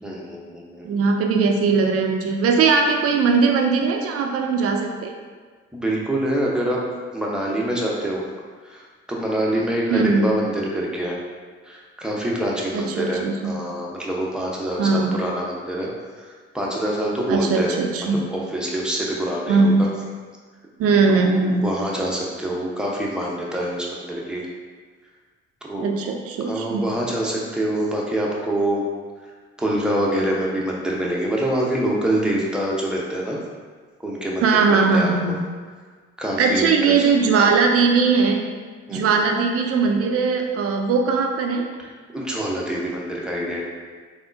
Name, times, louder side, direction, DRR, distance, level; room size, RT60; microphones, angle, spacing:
voice 1, 0.0-0.9 5.7-6.8 7.1-8.3 8.6-11.2 11.7-15.9 16.2-17.7 18.0-19.9 21.1-24.5 25.6-28.8 29.6-33.4 34.0-35.4 36.2-36.9 37.2-37.5 38.9-39.2 42.1-43.7, right 1 dB, ahead, -4 dB, 0.7 m, -26 dB
voice 2, 0.8-5.1 9.9-10.2 12.7-13.5 14.8-15.2 17.3-18.2 19.5-19.8 20.8-21.7 25.8-26.9 34.4-35.3 36.4-38.4 38.9-41.6, right 4 dB, 45° right, 3 dB, 0.5 m, -19 dB
3.5 x 2.1 x 2.5 m, 1.5 s
hypercardioid pair, 45°, 32 cm